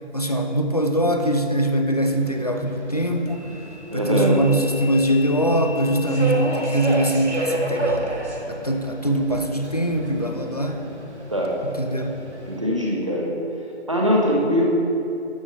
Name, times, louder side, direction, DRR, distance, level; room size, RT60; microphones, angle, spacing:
voice 1, 0.1-3.5 3.9-8.1 8.5-10.8 11.8-12.2, right 1 dB, 35° left, 4 dB, 0.5 m, -22 dB
Subway metro underground, 2.1-12.6, right 2 dB, 75° right, 1.9 m, -31 dB
voice 2, 3.9-4.4 11.3-11.6 12.4-13.4 13.9-14.7, equal, 25° right, -2 dB, 0.9 m, -21 dB
12.0 x 7.0 x 3.0 m, 2.7 s
figure-of-eight pair, 175°, 34 cm